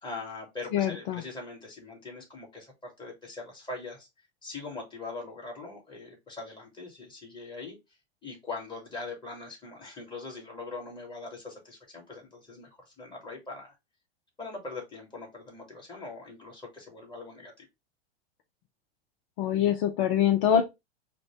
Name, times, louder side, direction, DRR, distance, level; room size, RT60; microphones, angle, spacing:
voice 1, 0.0-4.1 4.4-7.8 8.2-13.7 14.4-17.7, left 3 dB, 15° left, 2.1 m, -41 dB
voice 2, 0.7-1.2 19.4-20.6, left 9 dB, 55° left, 0.7 m, -24 dB
5.0 x 2.3 x 3.3 m
hypercardioid pair, 105°, 33 cm